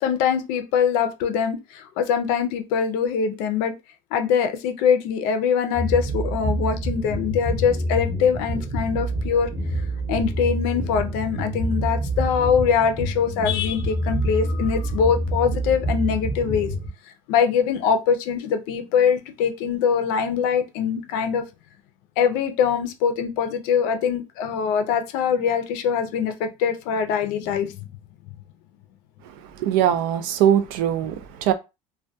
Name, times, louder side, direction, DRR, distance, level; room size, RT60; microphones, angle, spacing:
voice 1, 0.0-3.7 4.1-9.5 10.1-16.7 17.3-21.4 22.2-27.8, left 7 dB, 70° left, 0.5 m, -23 dB
sound 1, 5.7-16.9, right 1 dB, 5° right, 0.7 m, -27 dB
voice 2, 29.6-31.5, right 10 dB, 70° right, 0.4 m, -21 dB
2.2 x 2.2 x 2.7 m
cardioid pair, 150°, 14 cm